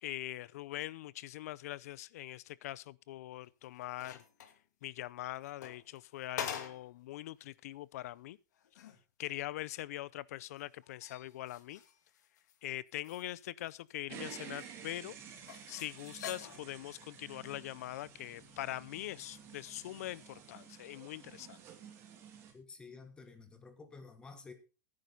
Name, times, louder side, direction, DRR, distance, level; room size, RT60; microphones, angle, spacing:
voice 1, 0.0-4.2 4.8-8.4 9.2-11.8 12.6-15.1 15.7-21.6, left 15 dB, 60° left, 0.6 m, -42 dB
sound 1, 3.5-4.6 5.3-7.0 7.4-7.5 8.0-8.1 8.5-9.0 10.6-12.6 12.9-14.2 14.6-14.7 15.5-16.8 17.7-17.9, left 9 dB, 85° left, 2.3 m, -46 dB
sound 2, 14.1-22.5, right 8 dB, 25° right, 2.6 m, -52 dB
voice 2, 22.5-24.5, left 4 dB, 10° left, 1.4 m, -51 dB
15.5 x 9.8 x 3.9 m
supercardioid pair, 170°, 9 cm